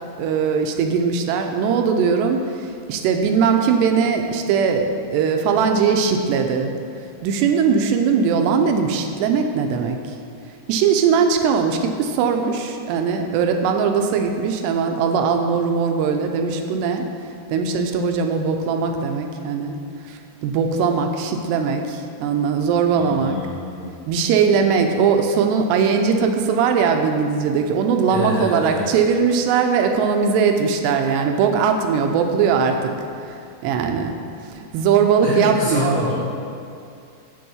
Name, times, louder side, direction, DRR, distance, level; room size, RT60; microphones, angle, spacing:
voice 1, 0.2-6.7 7.2-10.0 10.7-17.1 17.5-19.8 20.1-23.4 24.1-32.9 33.2-34.2 34.6-36.0, right 6 dB, 80° right, 4 dB, 2.7 m, -20 dB
voice 2, 22.9-24.2 28.1-29.0 35.2-36.2, left 1 dB, 35° left, -10 dB, 2.7 m, -27 dB
7.8 x 6.4 x 7.1 m, 2.5 s
omnidirectional pair, 5.0 m